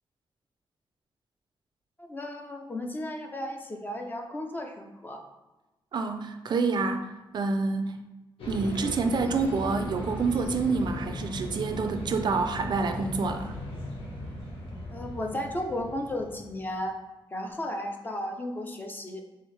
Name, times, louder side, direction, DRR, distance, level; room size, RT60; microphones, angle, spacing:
voice 1, 2.0-5.2 14.9-17.0 17.3-19.2, left 1 dB, 20° left, 3 dB, 0.5 m, -34 dB
voice 2, 5.9-8.0 8.5-13.5, right 4 dB, 55° right, 7 dB, 0.4 m, -28 dB
sound 1, 8.4-16.7, left 1 dB, 85° left, 1.1 m, -37 dB
4.5 x 3.6 x 3.2 m, 1.1 s
wide cardioid pair, 170°, 9 cm